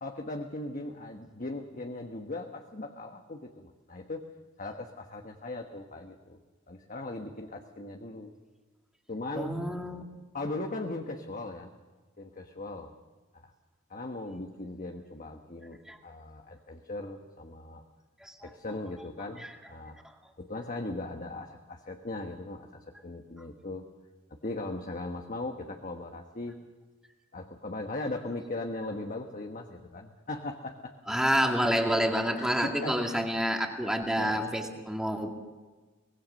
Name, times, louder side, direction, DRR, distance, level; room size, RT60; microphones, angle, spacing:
voice 1, 0.0-4.3 4.6-6.4 6.7-8.3 9.1-9.6 10.3-11.7 12.2-12.9 13.3-13.5 13.9-17.8 18.4-20.0 20.4-23.9 24.3-26.6 27.3-30.9 31.6-31.7 32.3-33.2 33.8-34.5, left 2 dB, 40° left, 3 dB, 1.3 m, -39 dB
voice 2, 9.4-10.0 15.9-16.0 18.2-18.5 19.4-19.5 31.1-35.3, equal, 5° right, 2 dB, 2.2 m, -28 dB
24.0 x 19.5 x 6.5 m, 1.3 s
head